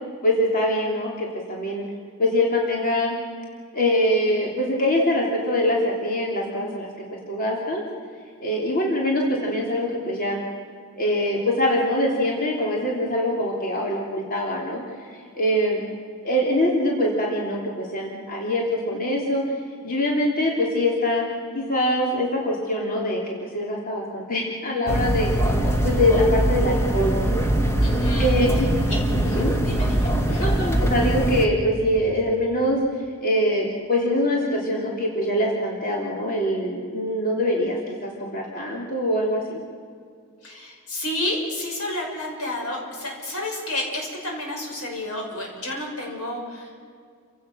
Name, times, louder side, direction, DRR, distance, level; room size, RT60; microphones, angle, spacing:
voice 1, 0.2-1.8 2.2-3.1 3.7-7.8 8.4-10.4 11.0-14.8 15.1-15.8 16.2-19.4 19.8-21.2 21.5-25.3 25.8-27.3 28.2-28.7 29.2-29.5 30.4-32.8 33.2-39.6, left 1 dB, 40° left, -2 dB, 3.2 m, -23 dB
sound 1, 24.9-31.5, right 1 dB, 10° left, 1.9 m, -22 dB
voice 2, 27.8-28.3 28.8-30.5 40.4-46.8, left 1 dB, 85° left, 0 dB, 6.1 m, -31 dB
30.0 x 16.5 x 6.3 m, 2.2 s
head